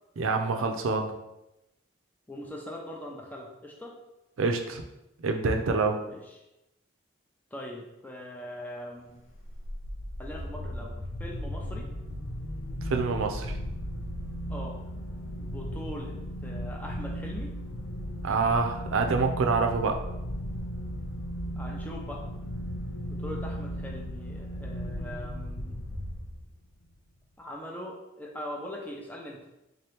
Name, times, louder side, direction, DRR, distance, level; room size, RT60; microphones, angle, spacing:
voice 1, 0.2-1.1 4.4-4.8 5.2-6.0 12.9-13.6 18.2-20.0, right 4 dB, 85° right, 5 dB, 0.5 m, -26 dB
voice 2, 2.3-3.9 6.1-6.2 7.5-9.2 10.2-11.9 14.5-14.8 15.4-16.1 16.4-17.6 21.6-22.2 23.1-25.8 27.4-29.4, left 1 dB, 10° left, -1 dB, 0.5 m, -41 dB
sound 1, 9.3-26.7, equal, 90° left, 0.6 m, -36 dB
3.7 x 2.8 x 3.4 m, 0.91 s
head